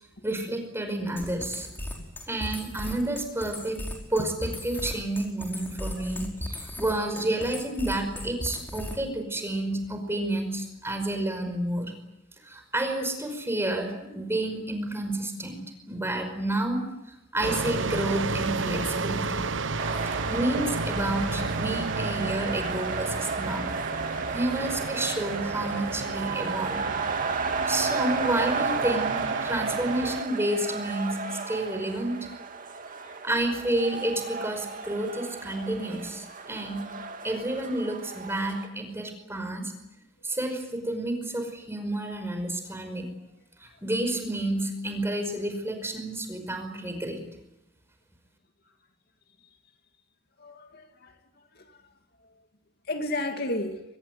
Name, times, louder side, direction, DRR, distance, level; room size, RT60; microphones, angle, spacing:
voice 1, 0.2-1.7 2.3-3.8 4.1-11.9 12.4-16.8 17.3-19.4 20.0-23.7 24.3-26.8 27.7-32.2 33.2-36.8 37.2-39.7 40.2-43.1 43.6-47.2, right 1 dB, 15° right, 6 dB, 5.3 m, -30 dB
sound 1, 1.2-9.2, left 1 dB, 10° left, 4.9 m, -36 dB
sound 2, 17.4-30.2, right 4 dB, 75° right, 1.1 m, -32 dB
sound 3, 19.8-38.7, right 4 dB, 45° right, 2.3 m, -33 dB
voice 2, 50.4-51.1 51.5-51.8 52.2-52.3 52.9-53.8, left 1 dB, 55° left, 5 dB, 2.5 m, -33 dB
25.0 x 20.5 x 9.5 m, 0.90 s
head